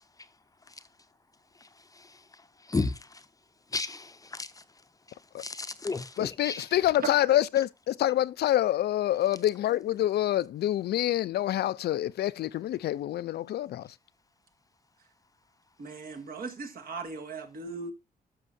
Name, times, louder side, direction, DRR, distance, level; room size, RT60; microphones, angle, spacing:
voice 1, 3.7-4.5 5.4-6.6, left 3 dB, 20° left, 0.6 m, -32 dB
voice 2, 6.2-13.9, left 13 dB, 90° left, 0.4 m, -27 dB
voice 3, 15.8-17.9, right 4 dB, 65° right, 2.0 m, -37 dB
13.5 x 6.1 x 2.6 m
cardioid pair, 110°, 16 cm